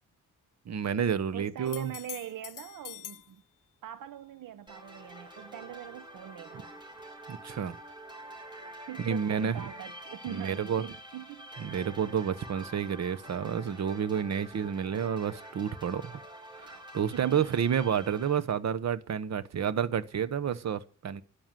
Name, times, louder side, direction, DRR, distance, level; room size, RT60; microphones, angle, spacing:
voice 1, 0.7-1.9 7.3-7.8 9.0-9.5 10.3-10.8 11.6-16.2 16.6-21.2, right 8 dB, 55° right, 1.2 m, -30 dB
voice 2, 1.3-3.4 3.8-6.8 8.9-11.5 17.1-17.5, right 11 dB, 80° right, 0.9 m, -42 dB
sound 1, 1.7-3.3 7.0-7.1, left 13 dB, 75° left, 0.7 m, -44 dB
sound 2, 4.7-18.4, right 1 dB, 15° right, 3.1 m, -47 dB
13.0 x 11.0 x 7.7 m
wide cardioid pair, 150°, 32 cm